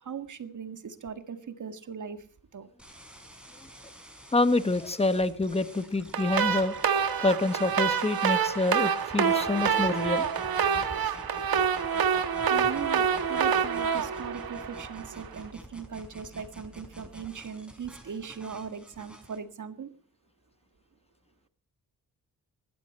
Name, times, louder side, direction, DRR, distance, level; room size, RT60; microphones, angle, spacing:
voice 1, 0.0-2.2 2.5-2.7 12.5-19.9, right 6 dB, 55° right, 9 dB, 1.9 m, -39 dB
sound 1, 2.8-19.4, equal, 5° right, 4.8 m, -48 dB
voice 2, 4.3-6.7 7.2-10.3, left 2 dB, 15° left, 12 dB, 1.1 m, -27 dB
sound 2, 6.1-15.2, right 7 dB, 80° right, 1.8 m, -27 dB
20.0 x 15.5 x 4.3 m, 0.41 s
wide cardioid pair, 135°, 36 cm